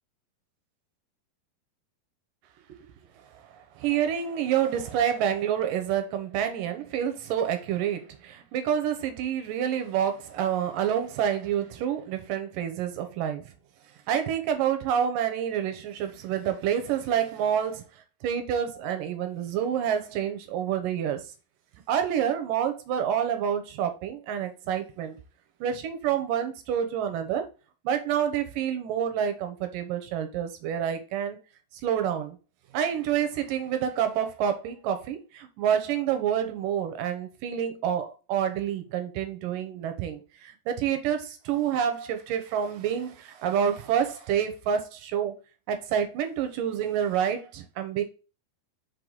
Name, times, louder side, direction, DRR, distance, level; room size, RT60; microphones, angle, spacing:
voice 1, 3.8-13.5 14.1-17.9 18.2-21.2 21.9-25.2 25.6-27.5 27.8-31.4 31.8-32.4 32.7-45.4 45.7-48.0, right 9 dB, 75° right, 2.4 m, -28 dB
5.3 x 4.8 x 3.9 m
omnidirectional pair, 4.2 m